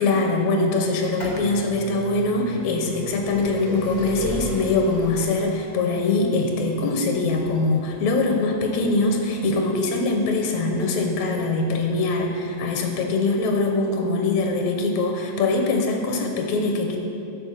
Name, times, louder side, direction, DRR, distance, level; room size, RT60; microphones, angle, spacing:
voice 1, 0.0-17.0, left 3 dB, 85° left, 2 dB, 2.3 m, -23 dB
sound 1, 0.9-12.5 13.3-13.4 14.4-14.5 14.7-14.8, left 1 dB, 40° left, 0.6 m, -36 dB
8.7 x 5.9 x 6.7 m, 2.7 s
omnidirectional pair, 3.3 m